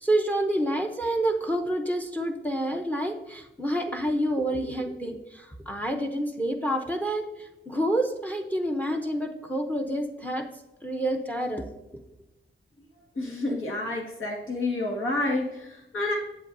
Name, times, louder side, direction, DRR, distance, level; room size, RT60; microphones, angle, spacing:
voice 1, 0.0-10.5 10.8-12.0, right 1 dB, 10° left, 4 dB, 0.7 m, -28 dB
voice 2, 13.2-16.2, left 2 dB, 85° left, -1 dB, 1.9 m, -29 dB
8.1 x 7.4 x 2.6 m, 0.94 s
wide cardioid pair, 105°, 20 cm